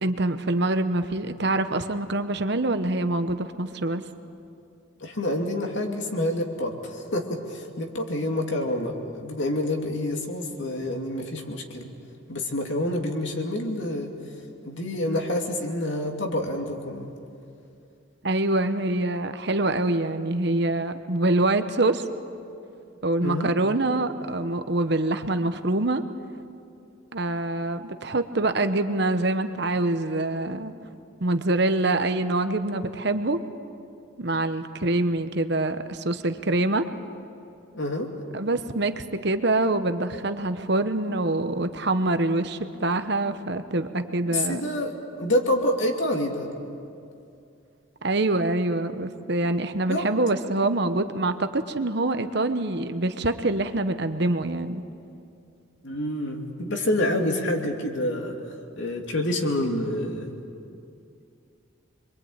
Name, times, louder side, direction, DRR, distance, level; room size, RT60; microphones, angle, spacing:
voice 1, 0.0-4.0 18.2-22.1 23.0-26.0 27.1-30.7 31.2-33.4 34.2-36.9 38.3-44.6 48.0-54.8, right 2 dB, 55° right, 9 dB, 1.0 m, -25 dB
voice 2, 5.0-11.9 12.3-14.1 14.6-17.1 23.2-23.5 37.7-38.1 44.3-46.5 49.9-50.1 55.8-58.4 58.8-60.3, left 1 dB, 60° left, 2 dB, 2.8 m, -27 dB
26.5 x 23.0 x 8.8 m, 2.5 s
head